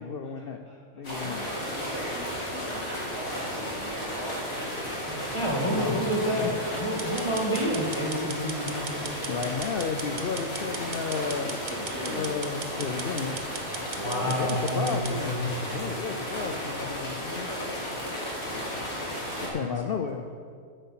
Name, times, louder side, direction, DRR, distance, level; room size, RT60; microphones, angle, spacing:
voice 1, 0.0-0.6 0.9-1.4 5.7-6.6 9.3-11.6 12.1-13.3 14.4-17.5 19.4-20.2, left 5 dB, 60° left, 5 dB, 0.6 m, -33 dB
sound 1, 1.0-19.5, equal, 80° left, 2.7 m, -34 dB
voice 2, 1.1-5.0 5.7-6.0 11.7-12.3 14.0-14.3, equal, 85° right, -4 dB, 3.0 m, -39 dB
voice 3, 5.1-9.1 14.0-15.5 19.4-19.6, equal, 20° left, -3 dB, 1.8 m, -29 dB
sound 2, 7.0-15.2, right 4 dB, 40° right, 0.9 m, -39 dB
10.0 x 8.6 x 5.7 m, 2.1 s
omnidirectional pair, 1.4 m